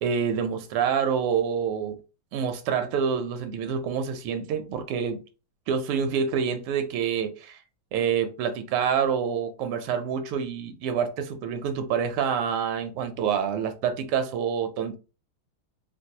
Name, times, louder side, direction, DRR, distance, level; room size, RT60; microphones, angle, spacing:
voice 1, 0.0-2.0 2.3-5.2 5.7-7.6 7.9-15.0, right 7 dB, 85° right, 1.5 m, -27 dB
4.5 x 2.1 x 2.7 m
omnidirectional pair, 2.4 m